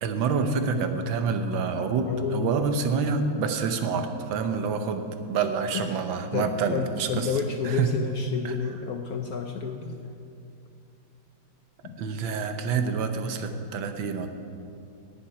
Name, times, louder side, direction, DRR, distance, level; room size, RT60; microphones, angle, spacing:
voice 1, 0.0-7.3 7.6-7.9 8.4-8.6 12.0-14.3, right 5 dB, 75° right, 7 dB, 1.6 m, -27 dB
voice 2, 2.0-2.7 5.7-10.0 11.8-12.0, left 6 dB, 65° left, 4 dB, 0.9 m, -31 dB
11.0 x 7.2 x 9.2 m, 2.6 s
omnidirectional pair, 2.2 m